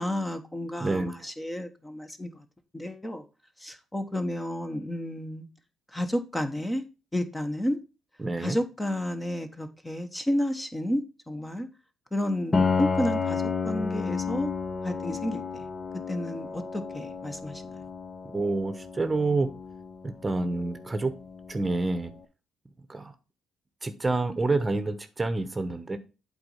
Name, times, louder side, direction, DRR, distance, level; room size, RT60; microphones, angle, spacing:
voice 1, 0.0-2.4 2.7-3.2 3.6-5.5 5.9-6.8 7.1-7.8 8.4-11.7 12.1-14.5 14.8-15.6 16.1-17.6, left 1 dB, 15° left, 1.2 m, -31 dB
voice 2, 0.8-1.1 8.2-8.6 18.3-19.5 20.0-21.1 21.5-22.1 22.9-23.1 23.8-26.0, right 3 dB, 20° right, 1.0 m, -28 dB
Piano, 12.5-22.1, left 5 dB, 35° left, 0.9 m, -32 dB
7.9 x 4.1 x 5.6 m
supercardioid pair, 70°, 0 cm